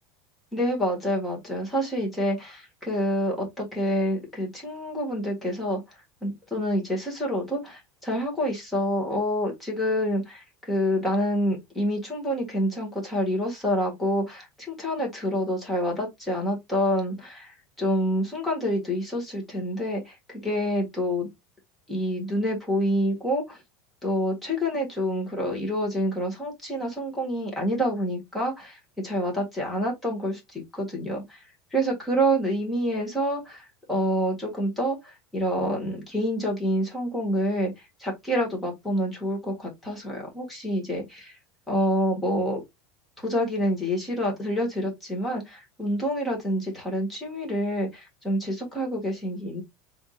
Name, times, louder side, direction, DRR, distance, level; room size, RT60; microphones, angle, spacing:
voice 1, 0.5-5.8 6.2-21.3 21.9-23.6 24.0-31.4 31.7-41.3 41.7-42.6 43.2-49.6, equal, 5° left, 1.6 m, -27 dB
4.6 x 3.6 x 2.4 m
supercardioid pair, 165°, 0 cm